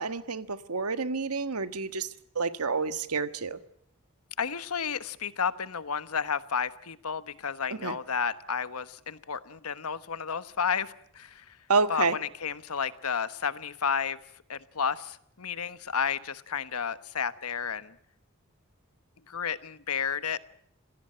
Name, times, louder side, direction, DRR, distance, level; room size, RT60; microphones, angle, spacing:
voice 1, 0.0-2.1 2.3-3.6 7.8-7.9 11.7-12.1, right 4 dB, 90° right, 11 dB, 1.5 m, -28 dB
voice 2, 4.4-11.6 11.9-14.2 14.5-17.9 19.3-20.4, left 6 dB, 85° left, 14 dB, 1.2 m, -32 dB
26.5 x 17.0 x 8.8 m, 0.66 s
head